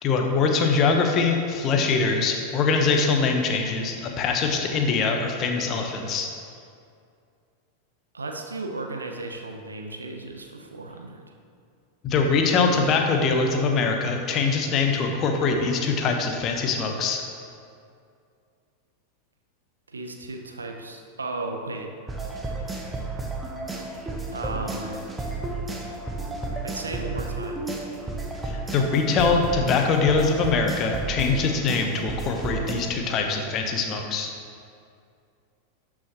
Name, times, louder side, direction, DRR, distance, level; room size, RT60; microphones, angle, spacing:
voice 1, 0.0-6.3 12.0-17.2 28.4-34.3, left 4 dB, 35° left, 3 dB, 1.1 m, -23 dB
voice 2, 8.1-11.2 19.9-21.9 24.3-25.0 26.6-27.7, right 2 dB, 75° right, 4 dB, 0.8 m, -35 dB
sound 1, 22.1-32.7, right 2 dB, 10° right, 1.1 m, -32 dB
12.5 x 6.1 x 3.0 m, 2.4 s
figure-of-eight pair, 90°, 0 cm